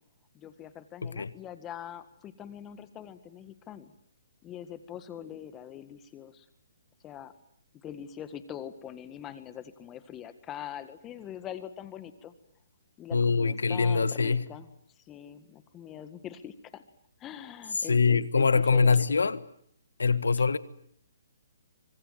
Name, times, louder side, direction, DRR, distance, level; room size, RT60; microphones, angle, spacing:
voice 1, 0.3-3.9 4.4-6.5 7.0-7.3 7.7-12.3 13.0-14.7 15.0-16.8 17.2-19.0, left 10 dB, 20° left, 1.7 m, -43 dB
voice 2, 13.1-14.4 17.9-19.4 20.0-20.6, left 4 dB, 85° left, 1.5 m, -24 dB
25.5 x 21.5 x 9.3 m
hypercardioid pair, 145°, 0 cm